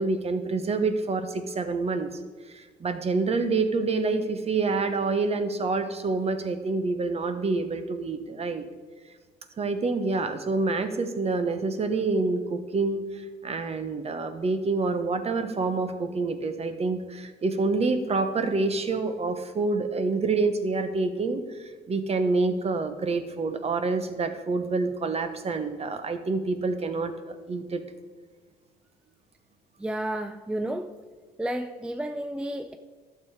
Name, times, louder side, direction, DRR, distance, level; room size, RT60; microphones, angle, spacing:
voice 1, 0.0-2.1 2.5-8.6 9.6-27.8, right 3 dB, 35° right, 9 dB, 1.1 m, -27 dB
voice 2, 29.8-30.9 31.4-32.8, right 1 dB, 5° right, 8 dB, 0.5 m, -31 dB
11.5 x 7.0 x 4.8 m, 1.4 s
cardioid pair, 90°, 18 cm